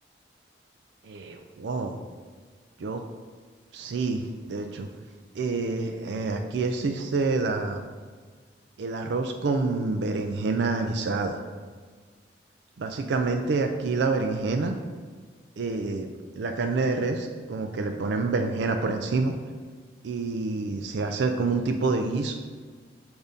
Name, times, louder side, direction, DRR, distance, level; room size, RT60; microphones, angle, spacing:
voice 1, 1.0-2.0 2.8-3.0 3.7-4.9 5.3-7.8 8.8-11.4 12.8-14.8 15.6-16.1 16.4-19.3 20.0-22.3, right 3 dB, 75° right, 4 dB, 0.4 m, -27 dB
7.0 x 2.7 x 5.0 m, 1.5 s
head